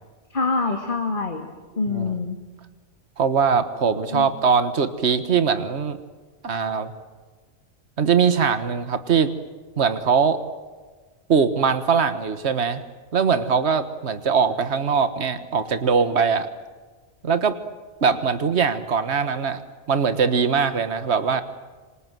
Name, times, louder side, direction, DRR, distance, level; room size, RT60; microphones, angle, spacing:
voice 1, 0.3-1.5 1.7-2.4 4.1-4.3, left 3 dB, 45° left, 2 dB, 2.5 m, -25 dB
voice 2, 3.2-6.0 6.4-6.9 8.0-9.3 9.8-10.4 11.3-12.8 13.1-16.5 17.2-17.6 18.0-19.6 19.9-21.4, right 6 dB, 65° right, 10 dB, 1.7 m, -21 dB
27.5 x 25.5 x 7.7 m, 1.3 s
omnidirectional pair, 1.2 m